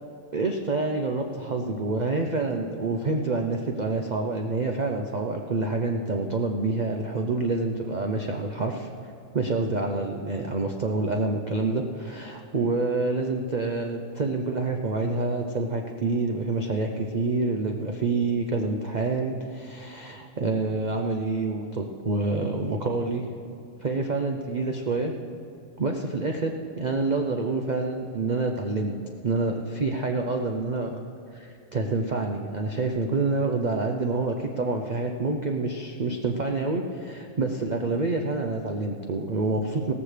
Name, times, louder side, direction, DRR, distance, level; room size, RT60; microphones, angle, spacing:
voice 1, 0.3-8.9 9.3-23.2 23.8-25.1 25.8-28.9 29.2-31.0 31.3-39.9, right 3 dB, 50° right, 3 dB, 0.5 m, -27 dB
17.0 x 14.5 x 3.3 m, 2.6 s
omnidirectional pair, 1.6 m